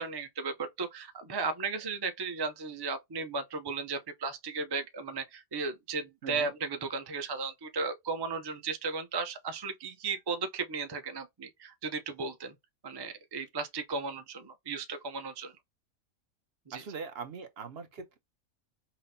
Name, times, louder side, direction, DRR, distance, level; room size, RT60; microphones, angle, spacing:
voice 1, 0.0-12.5 12.8-15.5 16.7-16.8, right 4 dB, 35° right, 0.3 m, -35 dB
voice 2, 16.7-18.2, right 5 dB, 55° right, 0.8 m, -41 dB
5.7 x 2.1 x 2.6 m
omnidirectional pair, 1.4 m